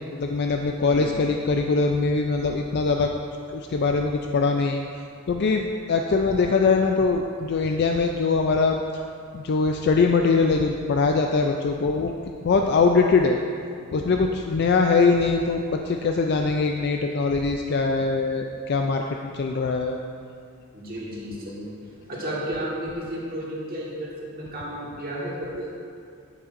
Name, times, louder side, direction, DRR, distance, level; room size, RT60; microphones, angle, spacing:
voice 1, 0.1-3.1 3.5-4.8 5.3-9.0 9.3-12.1 12.4-13.4 13.9-20.0, left 4 dB, 50° left, 3 dB, 0.3 m, -22 dB
voice 2, 0.8-1.2 20.7-21.7 22.1-25.7, right 1 dB, 45° right, -5 dB, 1.5 m, -33 dB
11.0 x 7.0 x 2.5 m, 2.3 s
head